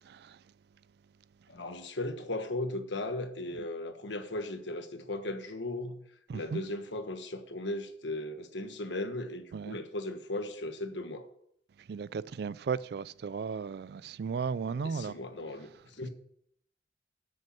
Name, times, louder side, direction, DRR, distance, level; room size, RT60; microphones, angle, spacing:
voice 1, 0.1-0.4 6.3-6.6 9.5-9.8 11.9-15.2, right 5 dB, 60° right, 0.3 m, -35 dB
voice 2, 1.5-6.0 6.3-11.3 14.8-16.1, left 2 dB, 80° left, 1.3 m, -37 dB
8.5 x 6.5 x 7.5 m
head